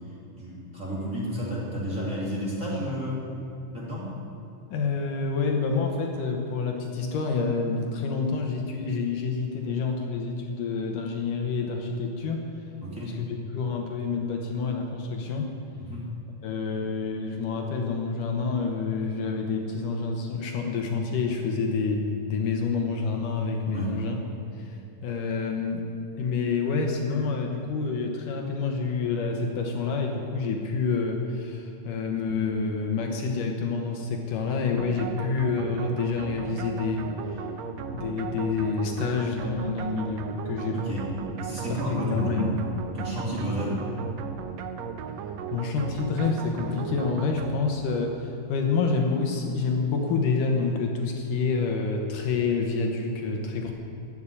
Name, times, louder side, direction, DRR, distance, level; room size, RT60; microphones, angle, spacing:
voice 1, 0.3-3.2 3.7-4.2 12.8-13.1 15.8-16.1 23.7-24.0 40.7-41.1 41.4-42.6 42.9-43.8, equal, 25° right, -6 dB, 3.0 m, -31 dB
voice 2, 4.7-12.5 13.0-15.6 16.4-24.2 24.5-25.9 26.2-37.4 37.9-40.8 41.7-42.5 45.5-53.7, left 4 dB, 70° left, 3 dB, 2.7 m, -28 dB
sound 1, 34.8-48.1, right 6 dB, 80° right, 1.6 m, -36 dB
14.5 x 8.1 x 10.0 m, 2.7 s
omnidirectional pair, 4.1 m